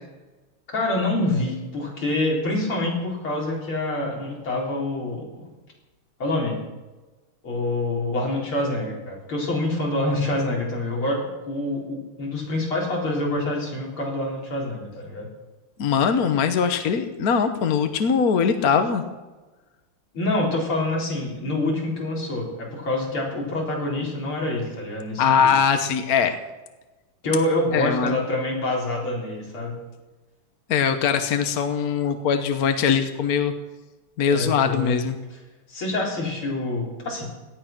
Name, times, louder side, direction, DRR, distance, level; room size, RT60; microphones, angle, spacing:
voice 1, 0.7-5.5 6.2-6.6 7.4-15.3 20.1-25.5 27.2-29.7 34.3-35.0 35.7-37.3, left 2 dB, 70° left, -3 dB, 5.0 m, -26 dB
voice 2, 15.8-19.0 25.2-26.4 27.7-28.2 30.7-33.5 34.2-35.2, left 6 dB, 50° left, 7 dB, 1.3 m, -21 dB
18.0 x 12.5 x 6.0 m, 1.2 s
omnidirectional pair, 2.4 m